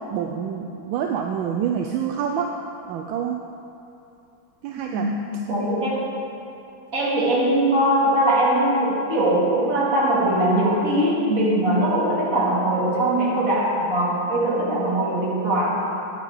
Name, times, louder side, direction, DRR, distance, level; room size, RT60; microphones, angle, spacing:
voice 1, 0.0-2.5 2.9-3.4 4.6-5.1, right 8 dB, 80° right, 2 dB, 1.3 m, -27 dB
voice 2, 5.5-6.0 6.9-15.7, right 1 dB, 45° right, -6 dB, 2.6 m, -21 dB
9.3 x 9.1 x 4.9 m, 2.8 s
omnidirectional pair, 2.1 m